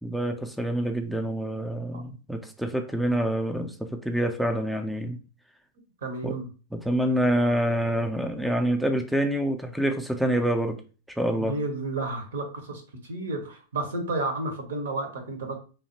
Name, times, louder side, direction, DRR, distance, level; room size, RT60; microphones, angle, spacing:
voice 1, 0.0-5.2 6.2-6.4 6.7-10.8 11.1-11.6, right 1 dB, ahead, 0.3 m, -26 dB
voice 2, 6.0-6.5 11.4-12.8 13.1-15.6, right 2 dB, 70° right, 0.8 m, -31 dB
3.1 x 2.0 x 2.9 m
hypercardioid pair, 100°, 0 cm